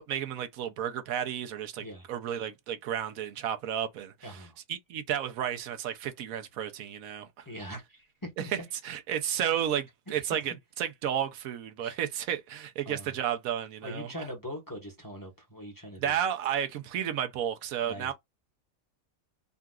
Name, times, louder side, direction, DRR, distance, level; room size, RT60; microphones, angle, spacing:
voice 1, 0.1-7.4 8.4-8.6 8.8-14.1 16.0-18.1, right 9 dB, 80° right, 1.1 m, -32 dB
voice 2, 4.2-4.6 7.4-8.5 10.2-10.3 11.8-12.0 12.8-13.1 13.8-16.1 17.8-18.1, equal, 15° left, 0.9 m, -42 dB
3.8 x 2.3 x 2.2 m
omnidirectional pair, 1.5 m